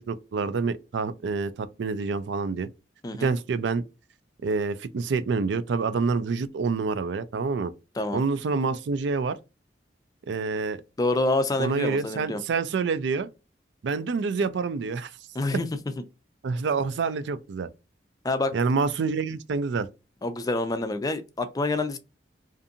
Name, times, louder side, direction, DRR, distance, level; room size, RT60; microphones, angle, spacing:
voice 1, 0.0-2.7 3.2-3.8 4.4-7.7 8.1-9.4 10.3-10.8 11.6-13.3 13.8-15.1 16.4-17.7 18.5-19.9, right 4 dB, 75° right, 0.4 m, -27 dB
voice 2, 11.0-12.4 15.3-15.7 18.2-18.5 20.2-22.0, left 2 dB, 20° left, 0.4 m, -27 dB
2.6 x 2.5 x 2.5 m
head